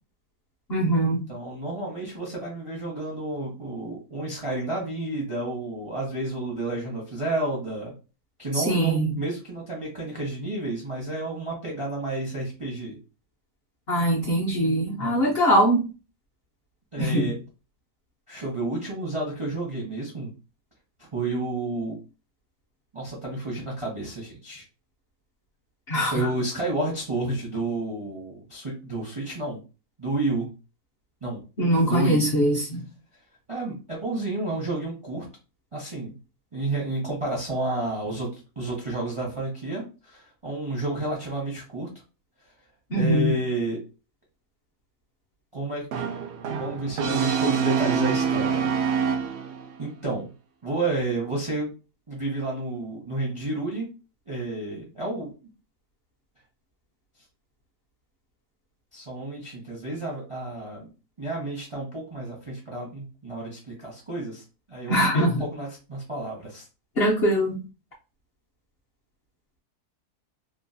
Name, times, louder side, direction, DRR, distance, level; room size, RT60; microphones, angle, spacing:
voice 1, 0.7-1.3 8.5-9.1 13.9-15.9 17.0-17.3 25.9-26.1 31.6-32.9 42.9-43.3 64.9-65.4 67.0-67.6, right 1 dB, 55° left, -3 dB, 0.7 m, -22 dB
voice 2, 1.3-7.9 8.4-13.0 15.0-15.3 16.9-17.3 18.3-20.3 21.0-21.9 22.9-24.6 26.1-29.6 30.0-30.5 31.2-31.4 31.8-32.3 33.5-35.2 35.7-36.2 36.5-41.9 42.9-43.8 45.5-45.9 46.6-48.7 49.2-49.3 49.8-50.3 50.6-51.7 52.1-53.9 54.3-55.3 58.9-60.9 61.2-64.4 64.7-66.6, right 2 dB, 40° right, -2 dB, 0.4 m, -30 dB
Brass instrument, 45.9-49.7, right 7 dB, 90° right, 0.5 m, -26 dB
3.0 x 2.3 x 2.6 m, 0.32 s
omnidirectional pair, 1.7 m